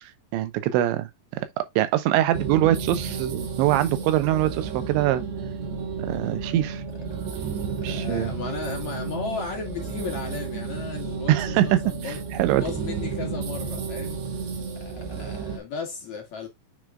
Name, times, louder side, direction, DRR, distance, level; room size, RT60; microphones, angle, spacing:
voice 1, 0.0-5.2 6.1-6.8 7.8-8.3 11.3-12.6, right 13 dB, 85° right, 3.2 m, -24 dB
sound 1, 2.3-15.6, right 5 dB, 70° right, 3.9 m, -32 dB
voice 2, 7.6-12.2 12.5-14.2 14.7-16.5, left 5 dB, 55° left, 2.4 m, -35 dB
9.5 x 5.0 x 2.4 m
omnidirectional pair, 5.2 m